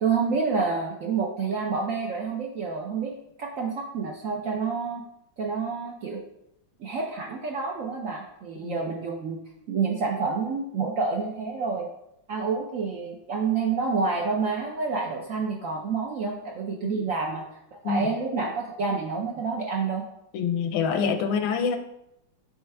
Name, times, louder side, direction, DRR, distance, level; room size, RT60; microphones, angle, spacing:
voice 1, 0.0-5.0 5.4-6.2 6.8-9.4 9.7-11.9 12.3-17.4 17.7-20.1, right 4 dB, 65° right, -1 dB, 0.8 m, -28 dB
voice 2, 20.3-21.8, left 6 dB, 85° left, 7 dB, 1.4 m, -26 dB
8.8 x 3.3 x 3.3 m, 0.81 s
omnidirectional pair, 2.1 m